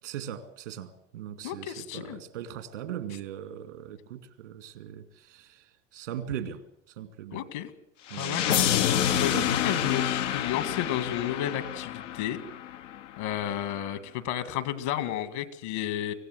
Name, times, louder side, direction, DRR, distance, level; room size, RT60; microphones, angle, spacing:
voice 1, 0.0-7.5 8.1-8.4 9.1-10.0, right 10 dB, 85° right, 2.4 m, -39 dB
voice 2, 1.4-2.2 7.3-7.7 8.1-8.5 9.2-12.4 13.2-16.1, left 11 dB, 70° left, 2.3 m, -32 dB
sound 1, 8.1-13.0, left 10 dB, 90° left, 0.8 m, -28 dB
24.5 x 16.5 x 8.0 m
hypercardioid pair, 80°, 36 cm